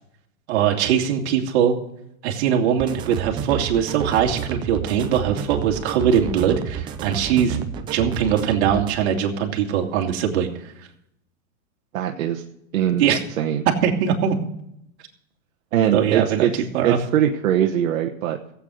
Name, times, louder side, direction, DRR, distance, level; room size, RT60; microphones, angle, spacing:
voice 1, 0.5-1.8 2.2-7.6 7.9-10.5 13.0-13.2 13.8-14.4 15.9-17.0, right 8 dB, 50° right, 2 dB, 2.6 m, -21 dB
sound 1, 2.8-8.9, right 8 dB, 10° right, 0.4 m, -30 dB
voice 2, 11.9-12.4 12.7-13.1 13.4-13.6 15.7-16.5 16.8-18.4, right 10 dB, 70° right, 2 dB, 1.2 m, -21 dB
15.5 x 8.5 x 6.4 m, 0.77 s
hypercardioid pair, 140°, 42 cm